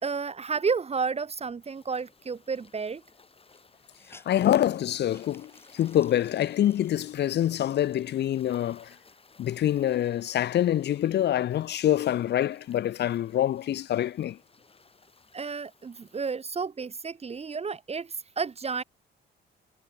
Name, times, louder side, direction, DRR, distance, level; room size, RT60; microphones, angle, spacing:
voice 1, 0.0-3.0 15.3-18.8, right 5 dB, 30° right, 1.1 m, -31 dB
sound 1, 1.6-16.3, left 4 dB, 30° left, 7.0 m, -59 dB
Hiss, 2.7-2.8 3.0-3.1 3.5-8.5 9.1-9.2 9.6-10.9, left 2 dB, 10° left, 6.3 m, -57 dB
voice 2, 4.1-8.9 9.4-14.4, left 11 dB, 60° left, 0.7 m, -26 dB
cardioid pair, 90°, 20 cm